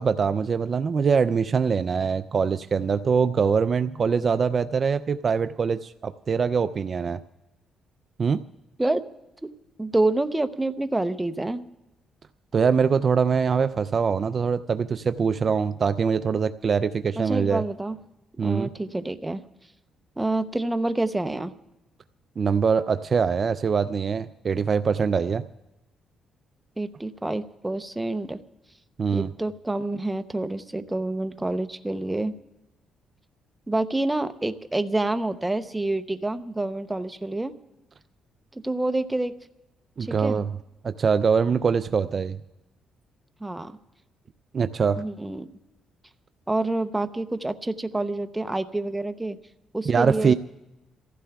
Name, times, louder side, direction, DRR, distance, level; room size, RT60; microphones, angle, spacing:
voice 1, 0.0-7.2 8.2-8.4 12.5-17.6 18.4-18.7 22.4-25.4 29.0-29.3 40.0-40.5 40.8-42.4 44.5-45.0 49.9-50.3, right 6 dB, 45° right, 11 dB, 0.4 m, -23 dB
voice 2, 9.8-11.6 17.2-18.0 18.4-19.4 20.2-21.5 26.8-28.4 29.1-32.3 33.7-37.5 38.6-39.3 40.0-40.4 43.4-43.7 45.0-45.5 46.5-49.4 49.7-50.3, right 2 dB, 10° right, 10 dB, 0.7 m, -27 dB
28.5 x 15.0 x 2.3 m, 0.97 s
cardioid pair, 90°, 0 cm